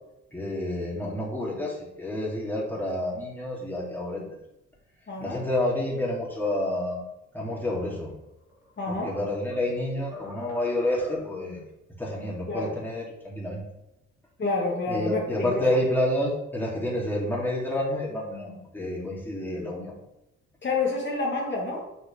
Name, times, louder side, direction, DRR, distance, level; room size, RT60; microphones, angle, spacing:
voice 1, 0.3-4.3 5.2-7.0 7.3-8.1 8.9-11.6 12.0-13.6 14.9-20.0, left 1 dB, 5° left, -5 dB, 3.3 m, -29 dB
voice 2, 5.1-5.4 8.8-9.2 12.5-12.7 14.4-15.6 20.6-21.8, left 3 dB, 35° left, -4 dB, 2.3 m, -28 dB
sound 1, 8.4-9.8 10.1-11.5, left 3 dB, 10° right, 2.2 m, -44 dB
8.4 x 6.4 x 3.6 m, 0.90 s
cardioid pair, 90°, 30 cm